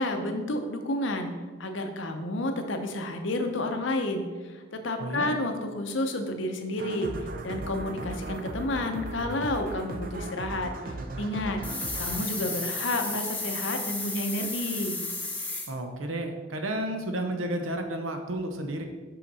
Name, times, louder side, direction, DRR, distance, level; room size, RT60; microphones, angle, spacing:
voice 1, 0.0-7.1 7.4-10.7 11.2-11.6 12.0-15.0, left 1 dB, 70° left, 6 dB, 0.8 m, -30 dB
voice 2, 5.0-5.3 15.7-18.8, right 1 dB, 85° right, 5 dB, 0.9 m, -32 dB
sound 1, 6.8-13.5, right 2 dB, 45° right, 0.5 m, -38 dB
sound 2, 11.6-15.7, left 2 dB, 10° left, 0.7 m, -33 dB
5.9 x 5.7 x 4.1 m, 1.4 s
head